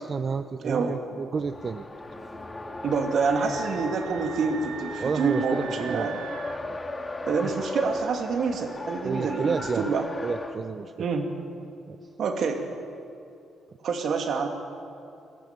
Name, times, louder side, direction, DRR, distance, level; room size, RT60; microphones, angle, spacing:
voice 1, 0.0-1.9 5.0-6.1 6.7-6.8 7.5-7.6 9.0-11.1 11.9-12.1, right 5 dB, 40° right, 10 dB, 0.6 m, -31 dB
voice 2, 0.6-1.0 2.8-6.2 7.2-10.1 11.0-11.3 12.2-12.7 13.8-14.5, right 5 dB, 65° right, 4 dB, 2.5 m, -27 dB
Race car auto racing, 1.3-10.6, left 2 dB, 20° left, 1.9 m, -36 dB
Screaming, 3.3-6.6, right 10 dB, 90° right, 0.9 m, -41 dB
21.0 x 15.0 x 9.2 m, 2.6 s
cardioid pair, 90°, 0 cm